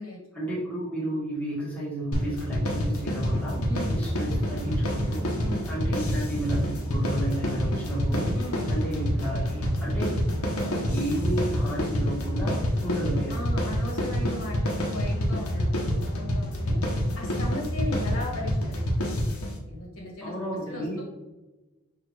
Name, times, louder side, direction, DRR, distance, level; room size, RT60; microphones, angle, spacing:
voice 1, 0.3-3.6 3.9-5.3 5.7-8.3 8.7-10.2 10.6-13.4 20.2-21.0, right 1 dB, 5° left, -8 dB, 1.3 m, -32 dB
sound 1, 2.1-19.6, equal, 90° left, 0.9 m, -27 dB
sound 2, 3.1-11.5, right 1 dB, 15° right, 0.8 m, -39 dB
voice 2, 3.6-4.0 5.4-5.7 8.3-8.7 13.3-16.8 17.1-19.2 19.6-21.0, left 1 dB, 70° left, -2 dB, 1.3 m, -37 dB
6.2 x 2.5 x 3.2 m, 1.1 s
head